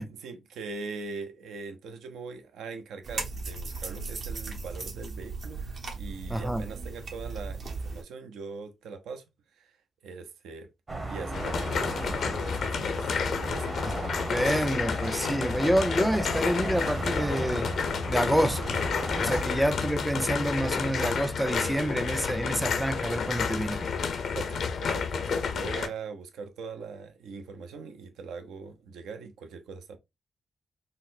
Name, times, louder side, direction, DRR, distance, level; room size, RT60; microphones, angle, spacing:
voice 1, 0.2-5.6 6.0-9.2 9.6-9.8 10.0-10.7 11.1-13.7 24.3-30.0, right 4 dB, 90° right, 0.5 m, -41 dB
sound 1, 3.0-8.0, right 4 dB, 70° right, 0.9 m, -37 dB
voice 2, 6.3-6.7 13.8-13.9 14.3-17.7 18.1-18.9 19.2-23.9, right 1 dB, 5° right, 0.4 m, -28 dB
sound 2, 10.9-19.4, right 2 dB, 45° right, 1.0 m, -36 dB
sound 3, 11.3-25.9, left 6 dB, 75° left, 0.5 m, -30 dB
4.0 x 2.0 x 2.5 m
cardioid pair, 60°, 0 cm